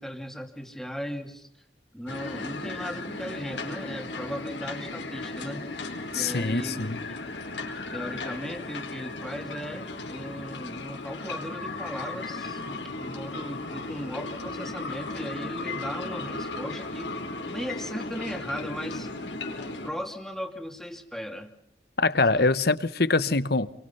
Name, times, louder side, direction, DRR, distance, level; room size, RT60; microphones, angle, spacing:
voice 1, 0.0-1.5 1.9-5.6 6.1-7.1 7.9-17.1 17.5-19.1 19.8-21.5 22.3-22.5, equal, ahead, 5 dB, 2.7 m, -37 dB
sound 1, 2.1-19.9, left 3 dB, 90° left, 4.8 m, -36 dB
voice 2, 6.1-7.0 22.0-23.7, left 3 dB, 60° left, 15 dB, 1.2 m, -24 dB
29.0 x 23.5 x 5.7 m, 0.73 s
head